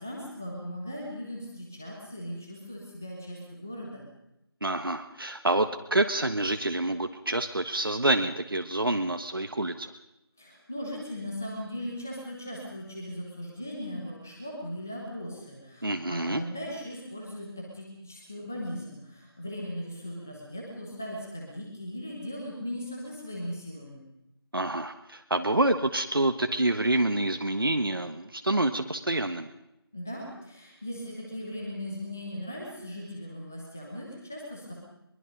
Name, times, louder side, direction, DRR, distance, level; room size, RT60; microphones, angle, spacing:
voice 1, 0.0-4.0 10.4-24.0 29.9-34.7, equal, 5° left, -2 dB, 1.0 m, -38 dB
voice 2, 4.6-9.9 15.8-16.4 24.5-29.5, right 2 dB, 60° right, 7 dB, 1.4 m, -27 dB
22.5 x 22.5 x 5.3 m, 0.86 s
figure-of-eight pair, 175°, 13 cm